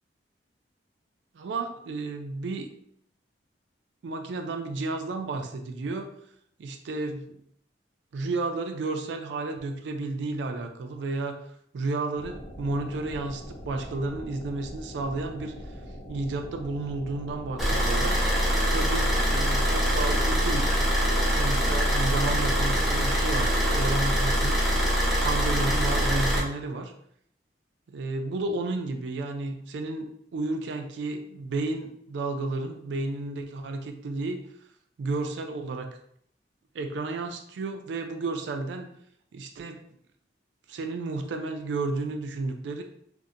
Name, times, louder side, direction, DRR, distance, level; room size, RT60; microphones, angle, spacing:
voice 1, 1.3-2.7 4.0-6.1 6.6-7.4 8.1-11.4 11.7-15.5 16.1-18.2 18.7-20.7 21.3-24.7 25.2-26.9 27.9-34.4 35.0-35.9 36.7-38.9 39.3-39.9 40.7-42.8, right 3 dB, 75° right, 5 dB, 0.3 m, -32 dB
sound 1, 12.1-22.7, equal, 60° left, 0.6 m, -42 dB
Car / Idling, 17.6-26.4, equal, ahead, 0.4 m, -24 dB
2.7 x 2.1 x 2.4 m, 0.70 s
head